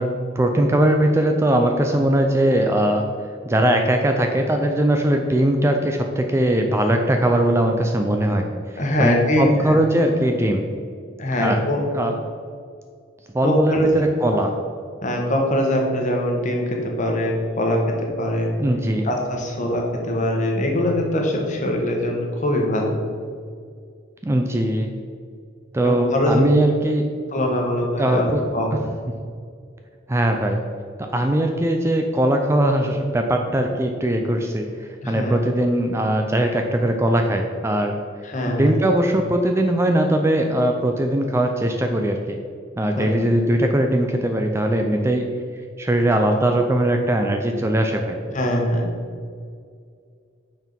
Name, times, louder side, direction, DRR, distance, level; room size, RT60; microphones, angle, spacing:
voice 1, 0.0-3.0 3.5-10.7 11.4-11.6 11.9-12.1 13.3-14.5 18.6-19.1 24.2-24.9 25.7-27.0 28.0-28.4 30.1-30.6 31.0-37.9 38.5-42.4 42.8-45.3 45.8-48.2, right 1 dB, 15° right, 4 dB, 0.3 m, -20 dB
voice 2, 8.8-9.8 11.2-11.8 13.4-13.9 15.0-18.5 19.0-23.0 25.8-26.5 27.3-28.8 35.0-35.4 38.2-38.7 43.0-43.1 48.3-48.9, left 1 dB, 40° left, 1 dB, 1.1 m, -22 dB
5.9 x 4.5 x 5.2 m, 2.2 s
head